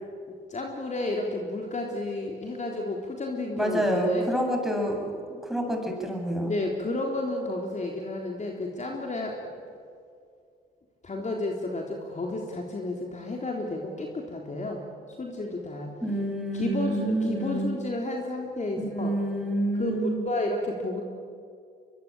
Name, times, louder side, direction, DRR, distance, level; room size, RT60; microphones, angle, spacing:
voice 1, 0.5-4.3 6.4-9.4 11.0-14.8 15.2-15.9 16.5-19.1 19.8-21.0, left 2 dB, 35° left, 1 dB, 3.8 m, -31 dB
voice 2, 3.5-6.5 16.0-17.7 18.9-20.2, right 1 dB, ahead, 1 dB, 8.0 m, -28 dB
23.5 x 22.5 x 8.9 m, 2.3 s
supercardioid pair, 60°, 21 cm